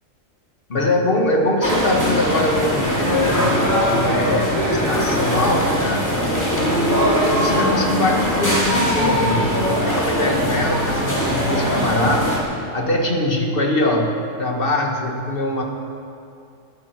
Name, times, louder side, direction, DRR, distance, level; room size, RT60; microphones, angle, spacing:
voice 1, 0.7-6.2 6.5-12.3 12.6-15.6, left 1 dB, 45° left, 1 dB, 2.0 m, -22 dB
sound 1, 1.6-12.4, equal, 15° left, 2.6 m, -20 dB
20.0 x 13.0 x 4.5 m, 2.5 s
omnidirectional pair, 1.3 m